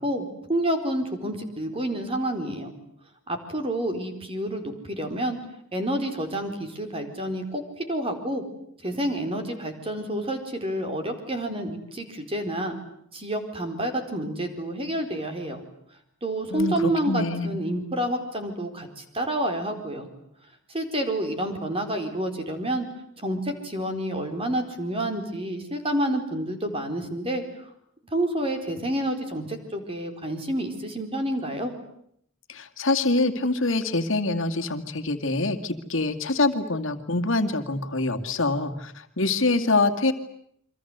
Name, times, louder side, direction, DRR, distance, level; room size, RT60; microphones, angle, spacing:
voice 1, 0.0-2.7 3.3-5.4 5.7-8.4 8.8-12.8 13.1-15.6 16.2-20.1 20.7-22.9 23.2-27.4 28.1-31.7, right 1 dB, 25° right, 6 dB, 4.4 m, -29 dB
voice 2, 16.5-17.5 32.5-40.1, left 2 dB, 65° left, 7 dB, 2.2 m, -25 dB
29.0 x 24.5 x 8.1 m, 0.70 s
head